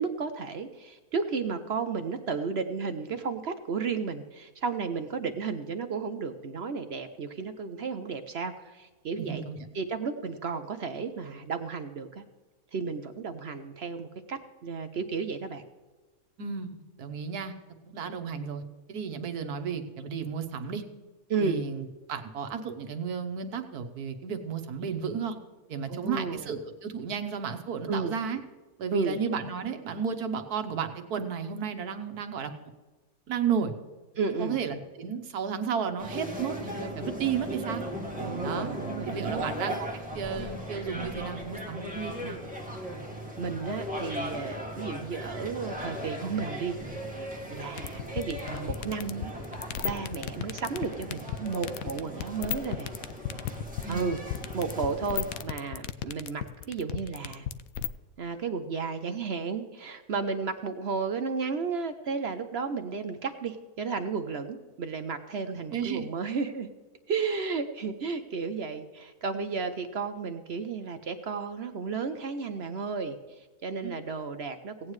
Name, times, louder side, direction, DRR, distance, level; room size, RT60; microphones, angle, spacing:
voice 1, 0.0-9.4 9.7-12.2 12.7-15.6 21.3-21.6 25.9-26.5 27.9-28.1 28.9-29.2 34.2-34.6 38.2-39.4 43.4-46.8 47.5-49.3 49.8-52.9 53.9-54.2 54.5-57.5 58.2-66.7 67.1-74.9, right 5 dB, 55° right, 8 dB, 0.8 m, -33 dB
voice 2, 9.2-9.6 16.4-17.5 17.8-18.6 18.9-20.8 21.4-25.4 25.7-28.4 28.8-32.5 33.3-33.7 34.4-37.8 38.4-38.7 39.0-39.9 40.1-42.4 53.8-54.1 65.7-66.0 73.8-73.9, right 7 dB, 80° right, 8 dB, 1.5 m, -33 dB
sound 1, 36.0-55.4, equal, 5° right, 1.8 m, -37 dB
sound 2, 47.8-57.9, left 12 dB, 70° left, 1.0 m, -33 dB
17.5 x 9.1 x 3.2 m, 1.3 s
omnidirectional pair, 1.6 m